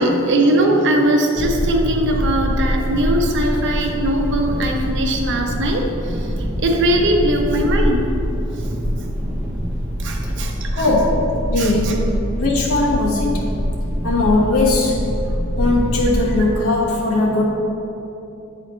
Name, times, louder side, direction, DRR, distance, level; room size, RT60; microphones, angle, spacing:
voice 1, 0.0-6.3 6.6-8.1 10.0-10.9 11.6-11.9, right 1 dB, 55° right, 2 dB, 0.7 m, -20 dB
sound 1, 1.4-16.4, equal, 15° right, 0.7 m, -24 dB
voice 2, 10.7-13.4 14.0-15.0 15.6-17.4, left 2 dB, 90° left, -3 dB, 1.1 m, -19 dB
9.4 x 4.1 x 3.1 m, 2.8 s
head